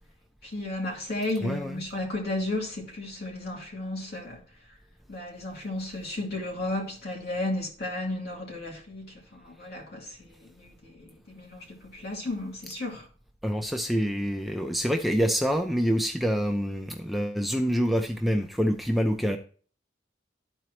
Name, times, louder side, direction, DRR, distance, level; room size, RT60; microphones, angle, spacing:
voice 1, 0.4-4.4 4.7-4.8 5.1-13.1, left 2 dB, 55° left, 2.5 m, -34 dB
voice 2, 1.4-1.8 13.4-19.4, equal, ahead, 0.5 m, -26 dB
12.5 x 4.5 x 3.0 m
head